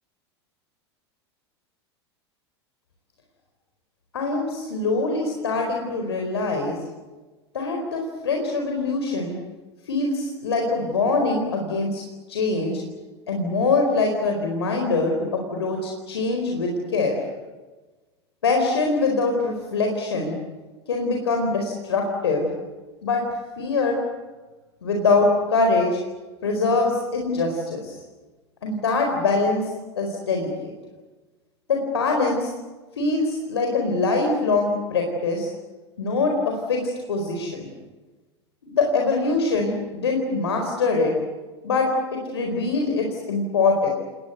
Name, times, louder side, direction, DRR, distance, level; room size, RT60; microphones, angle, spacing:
voice 1, 4.1-6.8 7.5-9.3 9.9-12.0 12.3-12.8 13.3-17.2 18.4-20.3 20.9-22.5 23.0-23.2 23.6-24.0 24.8-26.0 26.4-27.9 28.6-29.7 30.0-30.5 31.7-32.5 33.0-35.5 36.0-36.8 37.1-37.7 38.6-41.1 41.6-43.9, left 3 dB, 70° left, 2 dB, 4.5 m, -23 dB
30.0 x 20.5 x 8.1 m, 1.2 s
figure-of-eight pair, 85°, 14 cm